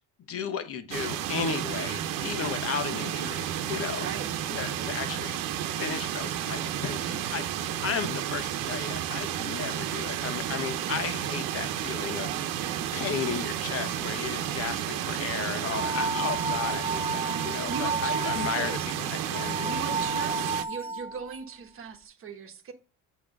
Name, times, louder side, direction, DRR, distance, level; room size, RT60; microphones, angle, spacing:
voice 1, 0.3-4.1 4.5-19.8, left 7 dB, 45° left, 1.1 m, -35 dB
sound 1, 0.9-20.6, right 10 dB, 90° right, 1.0 m, -32 dB
sound 2, 15.5-21.4, right 3 dB, 20° right, 0.4 m, -32 dB
voice 2, 17.7-18.8 19.6-22.7, right 6 dB, 40° right, 1.3 m, -38 dB
8.4 x 3.1 x 5.2 m
cardioid pair, 145°, 32 cm